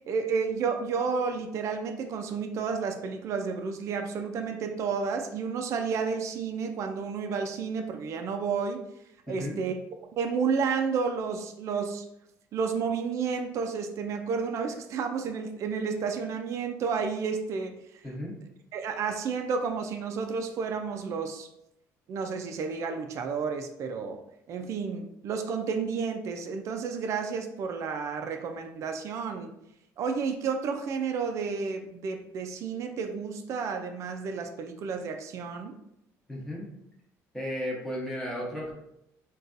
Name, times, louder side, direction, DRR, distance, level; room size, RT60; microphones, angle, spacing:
voice 1, 0.1-8.8 9.3-9.7 10.1-12.1 12.5-18.0 18.7-21.5 22.1-24.2 24.5-29.5 30.0-35.8, right 5 dB, 50° right, 4 dB, 0.3 m, -31 dB
voice 2, 9.3-9.6 18.0-18.3 36.3-36.6 37.3-38.7, equal, 5° left, -4 dB, 0.9 m, -34 dB
3.9 x 2.3 x 2.5 m, 0.80 s
cardioid pair, 125°, 7 cm